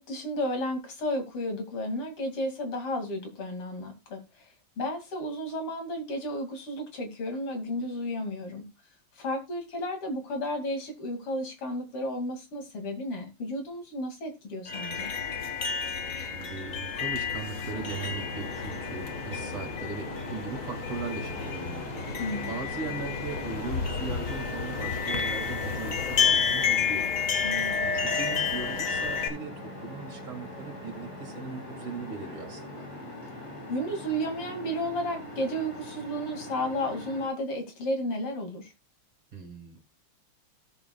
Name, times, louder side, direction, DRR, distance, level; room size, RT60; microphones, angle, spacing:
voice 1, 0.0-4.2 4.8-8.6 9.2-15.1 22.2-22.5 27.4-27.9 33.7-38.7, equal, 80° left, 3.3 m, -33 dB
sound 1, 14.7-29.3, left 6 dB, 40° left, 1.7 m, -30 dB
voice 2, 16.1-21.8 22.5-27.1 27.8-32.9 39.3-39.8, right 5 dB, 65° right, 3.0 m, -39 dB
sound 2, 17.7-37.3, left 1 dB, 55° left, 6.5 m, -42 dB
17.5 x 7.1 x 2.3 m
omnidirectional pair, 2.4 m